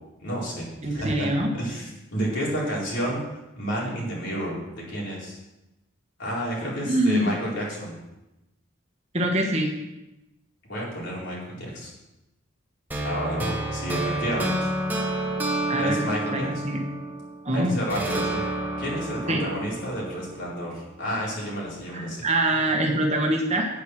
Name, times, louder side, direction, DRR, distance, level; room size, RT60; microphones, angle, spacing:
voice 1, 0.2-0.6 0.9-1.3 1.5-3.2 3.6-5.4 6.2-7.9 10.6-11.9 13.0-14.7 15.8-16.5 17.5-18.4 18.8-22.2, equal, 55° left, -5 dB, 4.4 m, -30 dB
voice 2, 0.8-1.5 6.8-7.3 9.1-9.7 15.7-16.0 16.3-16.8 17.4-17.8 19.3-19.4 21.9-23.7, right 1 dB, 30° right, 1 dB, 1.4 m, -24 dB
sound 1, 12.9-17.4 17.9-21.0, right 1 dB, 10° right, 1.2 m, -30 dB
9.3 x 8.5 x 6.4 m, 0.97 s
head